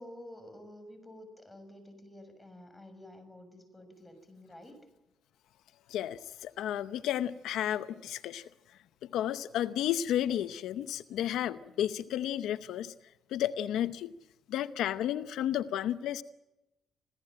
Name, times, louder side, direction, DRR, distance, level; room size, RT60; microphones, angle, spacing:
voice 1, 0.0-4.8, left 1 dB, 10° left, 8 dB, 6.7 m, -50 dB
voice 2, 5.9-8.4 9.1-12.9 13.3-14.1 14.5-16.2, left 11 dB, 85° left, 13 dB, 0.8 m, -32 dB
26.5 x 17.0 x 8.9 m, 0.98 s
cardioid pair, 90°, 0 cm